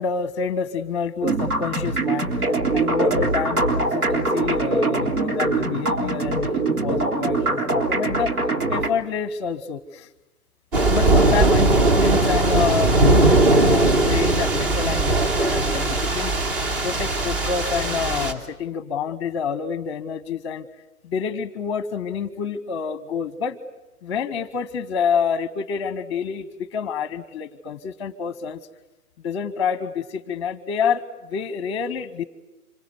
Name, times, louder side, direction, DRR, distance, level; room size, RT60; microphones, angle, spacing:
voice 1, 0.0-8.3 8.7-10.1 10.9-16.3 16.8-20.7 21.0-23.6 24.0-28.6 29.2-32.2, left 6 dB, 20° left, 17 dB, 1.0 m, -28 dB
sound 1, 1.2-8.9, right 3 dB, 75° right, 3.7 m, -23 dB
sound 2, 10.7-18.3, right 2 dB, 35° right, 3.0 m, -19 dB
26.5 x 24.0 x 8.2 m, 0.98 s
figure-of-eight pair, 140°, 45 cm